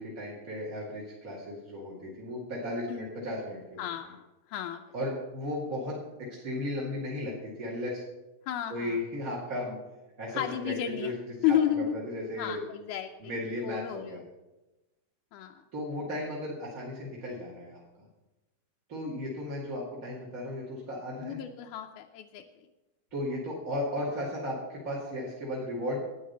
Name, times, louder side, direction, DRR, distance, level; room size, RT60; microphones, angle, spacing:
voice 1, 0.0-3.8 4.9-6.0 6.4-8.0 8.7-9.8 10.2-11.1 11.4-12.6 13.2-14.2 15.7-17.8 18.9-21.4 23.1-26.0, left 1 dB, 30° right, -5 dB, 2.4 m, -35 dB
voice 2, 3.8-4.8 8.5-9.0 10.3-11.1 11.4-12.0 12.4-13.3 13.6-14.2 15.3-15.6 21.2-22.4, left 10 dB, 85° left, 3 dB, 2.2 m, -32 dB
11.5 x 9.5 x 6.8 m, 1.0 s
omnidirectional pair, 3.5 m